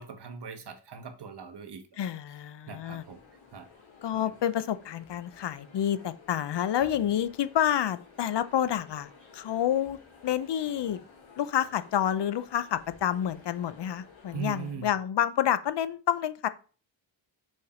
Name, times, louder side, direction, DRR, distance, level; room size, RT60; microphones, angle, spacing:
voice 1, 0.0-2.0 2.7-3.2 3.5-3.7 4.1-4.3 14.3-14.9, right 6 dB, 60° right, 1.3 m, -40 dB
voice 2, 2.0-3.0 4.0-10.0 10.2-11.0 11.4-16.5, left 10 dB, 60° left, 0.6 m, -29 dB
sound 1, 3.0-14.7, left 5 dB, 90° left, 3.3 m, -54 dB
6.5 x 4.4 x 4.9 m
wide cardioid pair, 115°, 46 cm